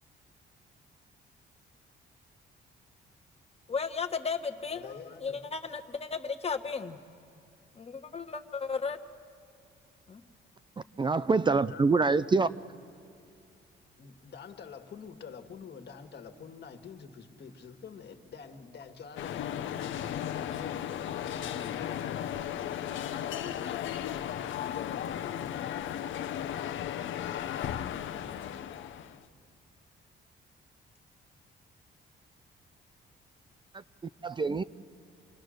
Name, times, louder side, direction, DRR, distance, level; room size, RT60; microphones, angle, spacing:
voice 1, 3.7-7.0 7.7-9.0 10.1-10.2, left 5 dB, 30° left, 1.4 m, -35 dB
voice 2, 4.7-5.5 11.7-11.9 14.0-19.4 20.2-22.0, left 6 dB, 55° left, 1.9 m, -47 dB
voice 3, 11.0-12.5 34.2-34.6, right 4 dB, 25° right, 0.5 m, -25 dB
sound 1, 19.2-29.2, left 10 dB, 75° left, 0.9 m, -35 dB
27.0 x 19.5 x 6.5 m
cardioid pair, 90°, 20 cm